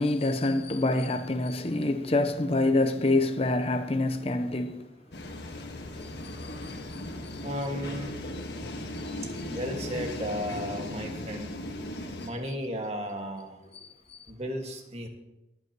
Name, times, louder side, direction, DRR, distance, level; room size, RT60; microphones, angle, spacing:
voice 1, 0.0-4.9 6.0-7.4 9.0-9.1 14.1-14.2, left 2 dB, 35° left, 0.8 m, -27 dB
sound 1, 5.1-12.3, left 1 dB, 70° left, 1.5 m, -37 dB
voice 2, 7.4-8.1 9.5-11.6 12.2-13.6 14.3-15.1, equal, 35° right, 1.8 m, -34 dB
23.5 x 8.5 x 3.0 m
head